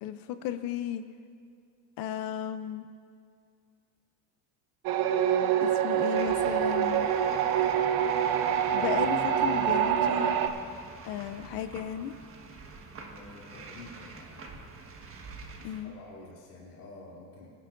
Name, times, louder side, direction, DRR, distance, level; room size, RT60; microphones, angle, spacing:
voice 1, 0.0-1.0 2.0-2.9 5.6-7.1 8.7-10.3 11.0-12.1 15.6-15.9, left 10 dB, 50° left, 10 dB, 0.6 m, -34 dB
sound 1, 4.8-10.5, right 9 dB, 50° right, 0.9 m, -26 dB
sound 2, 6.1-15.8, right 3 dB, 30° right, 1.5 m, -46 dB
voice 2, 13.1-14.4 15.6-17.5, left 3 dB, 85° left, -5 dB, 3.1 m, -49 dB
23.5 x 11.0 x 2.6 m, 2.3 s
supercardioid pair, 130°, 46 cm